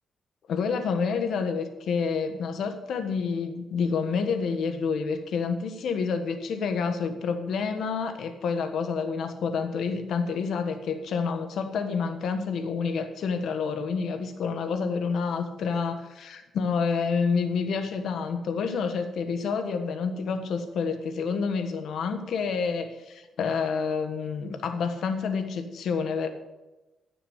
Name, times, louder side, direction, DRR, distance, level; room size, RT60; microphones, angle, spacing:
voice 1, 0.5-26.3, left 5 dB, 70° left, 7 dB, 1.4 m, -28 dB
15.5 x 7.0 x 6.5 m, 1.1 s
cardioid pair, 155°, 0 cm